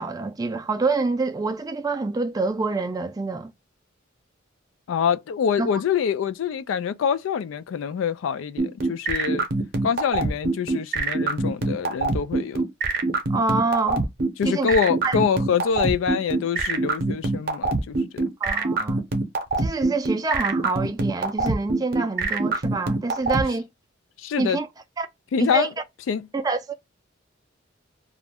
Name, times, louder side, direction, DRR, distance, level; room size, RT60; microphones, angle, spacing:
voice 1, 0.0-3.5 5.6-5.8 13.3-14.0 14.4-14.7 15.0-15.2 18.4-19.0 19.6-23.7 24.4-24.7 25.0-25.1 25.4-25.7 26.3-26.7, right 3 dB, 20° right, 0.3 m, -26 dB
voice 2, 4.9-9.5 9.8-12.7 14.4-18.2 24.2-24.6 25.3-25.7 26.1-26.3, left 7 dB, 85° left, 0.3 m, -25 dB
sound 1, 8.6-23.4, right 3 dB, 50° right, 0.7 m, -23 dB
2.4 x 2.1 x 3.4 m
head